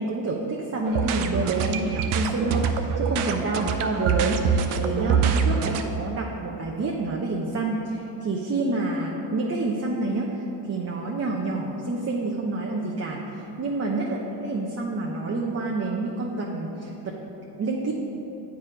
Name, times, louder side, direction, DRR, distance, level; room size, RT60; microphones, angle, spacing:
voice 1, 0.0-14.2 14.4-17.2 17.6-17.9, right 2 dB, 30° right, -1 dB, 0.8 m, -28 dB
sound 1, 0.8-5.8, right 6 dB, 75° right, 0.7 m, -24 dB
8.2 x 4.7 x 5.1 m, 3.0 s
supercardioid pair, 75°, 50 cm